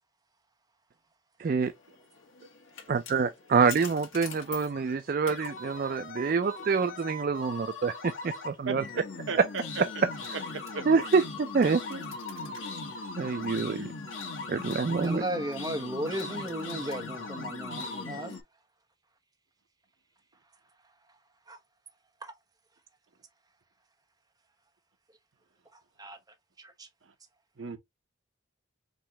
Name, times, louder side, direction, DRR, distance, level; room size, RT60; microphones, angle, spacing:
voice 1, 1.4-1.7 2.9-8.8 10.9-11.8 13.2-13.8 14.5-15.2, right 5 dB, 45° right, 0.3 m, -26 dB
sound 1, 2.2-18.4, left 3 dB, 80° left, 1.3 m, -40 dB
voice 2, 8.6-9.8 10.7-10.8 11.9-12.0 13.7-13.9 27.6-27.8, right 4 dB, 70° right, 0.8 m, -36 dB
voice 3, 14.8-18.4 21.5-21.6 22.2-22.3 26.0-26.2 26.6-26.9, right 1 dB, 20° right, 0.8 m, -35 dB
5.2 x 3.1 x 2.8 m
head